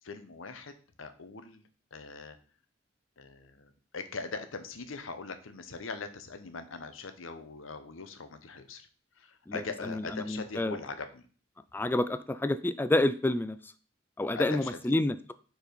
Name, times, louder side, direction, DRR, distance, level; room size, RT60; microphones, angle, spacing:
voice 1, 0.0-2.4 3.2-8.9 9.2-11.3 14.3-14.9, left 4 dB, 85° left, 9 dB, 0.8 m, -41 dB
voice 2, 9.9-10.8 11.7-13.7 14.2-15.1, left 1 dB, 10° left, 12 dB, 0.3 m, -28 dB
4.7 x 4.5 x 5.2 m, 0.40 s
head